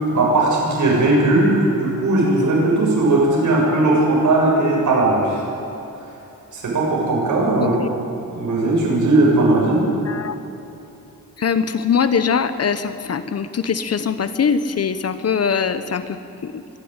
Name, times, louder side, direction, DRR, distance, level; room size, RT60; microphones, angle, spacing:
voice 1, 0.1-5.4 6.5-7.8 8.4-9.9, right 2 dB, 60° right, -3 dB, 7.2 m, -17 dB
voice 2, 7.6-7.9 10.1-10.4 11.4-16.6, left 6 dB, 45° left, 11 dB, 1.0 m, -22 dB
25.5 x 11.5 x 9.9 m, 2.9 s
wide cardioid pair, 125°, 34 cm